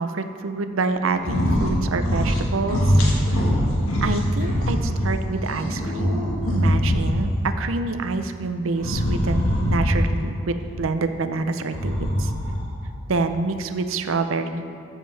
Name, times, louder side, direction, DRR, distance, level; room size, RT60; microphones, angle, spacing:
voice 1, 0.0-3.0 4.0-6.2 6.5-12.3 13.1-14.6, right 3 dB, 75° right, 9 dB, 0.6 m, -27 dB
sound 1, 1.2-1.7 2.0-2.4 2.7-5.1 5.5-7.4 8.8-10.2 11.6-12.7, equal, 85° left, 1.5 m, -22 dB
14.0 x 7.4 x 3.4 m, 2.4 s
head